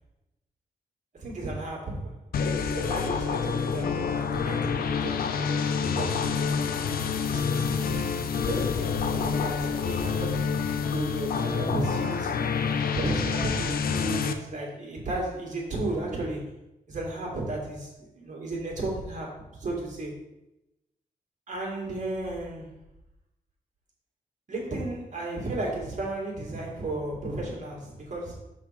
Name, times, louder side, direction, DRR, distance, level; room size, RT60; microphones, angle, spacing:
voice 1, 1.1-12.5 13.0-16.6 16.9-20.2 21.5-22.8 24.5-28.4, right 2 dB, 55° right, -3 dB, 2.4 m, -34 dB
sound 1, 2.3-14.3, left 6 dB, 80° left, 0.6 m, -28 dB
6.0 x 4.0 x 5.9 m, 0.93 s
wide cardioid pair, 105°, 15 cm